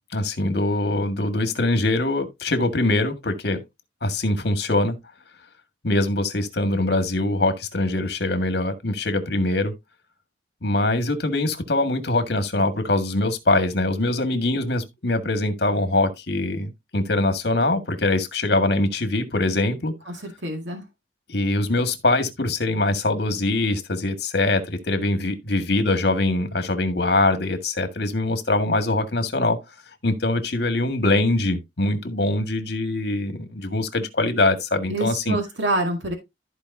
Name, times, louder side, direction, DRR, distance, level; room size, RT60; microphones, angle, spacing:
voice 1, 0.1-3.6 4.0-5.0 5.8-9.7 10.6-19.9 21.3-29.6 30.0-35.4, left 2 dB, 60° left, 1.8 m, -23 dB
voice 2, 20.2-20.8 34.9-36.1, right 1 dB, 80° right, 2.1 m, -26 dB
14.0 x 5.0 x 2.7 m
head